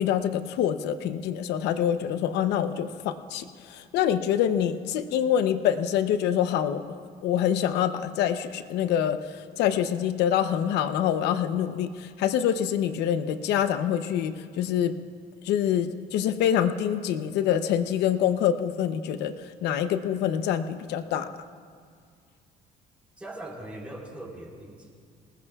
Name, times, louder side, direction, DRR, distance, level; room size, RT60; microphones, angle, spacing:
voice 1, 0.0-6.8 7.2-14.9 15.4-21.3, left 9 dB, 85° left, 10 dB, 0.8 m, -26 dB
voice 2, 23.2-24.9, right 1 dB, 5° right, -4 dB, 4.4 m, -40 dB
27.0 x 19.5 x 2.4 m, 2.1 s
cardioid pair, 110°, 17 cm